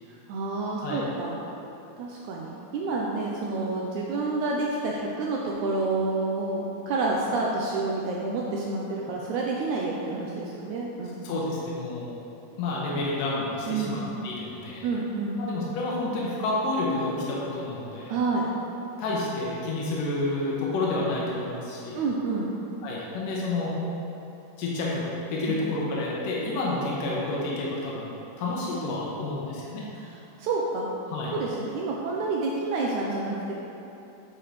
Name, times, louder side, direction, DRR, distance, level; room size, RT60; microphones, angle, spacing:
voice 1, 0.3-1.4 2.0-11.3 13.7-14.0 14.8-15.4 18.1-18.5 21.9-22.6 25.5-25.6 30.0-30.9 31.3-33.5, right 3 dB, 80° right, -3 dB, 1.8 m, -29 dB
voice 2, 11.2-12.1 12.6-14.9 15.4-18.1 19.0-22.0 22.8-23.8 24.6-28.1 28.4-29.8 31.1-31.3, left 2 dB, 85° left, -5 dB, 2.6 m, -29 dB
8.9 x 6.8 x 3.1 m, 2.9 s
omnidirectional pair, 3.8 m